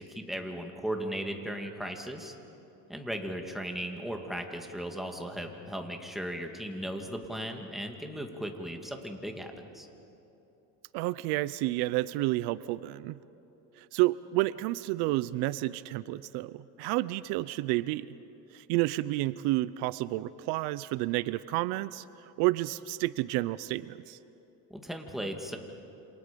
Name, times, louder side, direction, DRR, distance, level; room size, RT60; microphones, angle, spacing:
voice 1, 0.2-2.3 2.9-9.9 24.7-25.6, equal, ahead, 3 dB, 2.0 m, -37 dB
voice 2, 10.9-13.2 13.8-18.1 18.5-24.2, right 18 dB, 80° right, 17 dB, 0.7 m, -30 dB
28.0 x 27.0 x 5.2 m, 3.0 s
cardioid pair, 130°, 39 cm